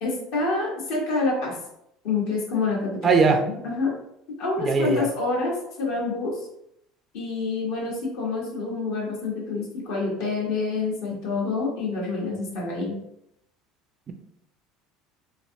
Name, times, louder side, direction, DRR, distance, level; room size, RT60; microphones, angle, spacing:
voice 1, 0.0-1.6 2.0-3.9 4.4-6.4 7.1-13.0, left 3 dB, 75° left, -3 dB, 1.2 m, -27 dB
voice 2, 3.0-3.4 4.6-5.1, right 4 dB, 35° right, 6 dB, 0.5 m, -20 dB
3.1 x 2.7 x 2.7 m, 0.77 s
hypercardioid pair, 85°, 0 cm